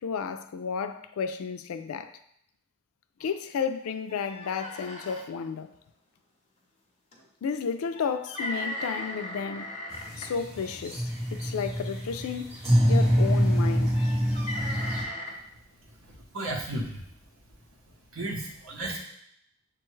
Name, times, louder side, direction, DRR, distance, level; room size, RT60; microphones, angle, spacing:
voice 1, 0.0-2.1 3.2-5.7 7.4-9.8 10.2-11.0 11.3-12.6 12.9-13.9, left 6 dB, 90° left, 0.3 m, -32 dB
sound 1, 3.2-3.3 3.7-3.8 4.1-5.2 7.1-7.2 7.9-10.3 11.4-11.7 12.8-13.2 13.9-15.3, left 1 dB, 30° left, 0.9 m, -37 dB
sound 2, 9.9-15.0, equal, 30° right, 1.5 m, -25 dB
voice 2, 15.9-17.0 18.1-19.0, right 1 dB, 75° right, 0.9 m, -34 dB
6.8 x 2.3 x 3.1 m
head